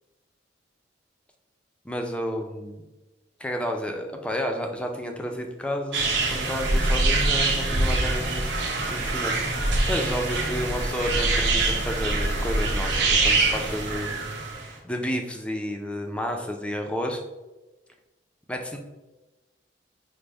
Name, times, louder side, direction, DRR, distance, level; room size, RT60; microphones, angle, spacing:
voice 1, 1.8-2.8 3.4-14.2 14.8-17.2 18.5-18.8, equal, 5° left, 3 dB, 0.3 m, -31 dB
sound 1, 5.9-14.7, right 2 dB, 70° right, 0.7 m, -24 dB
5.0 x 2.0 x 3.3 m, 1.1 s
head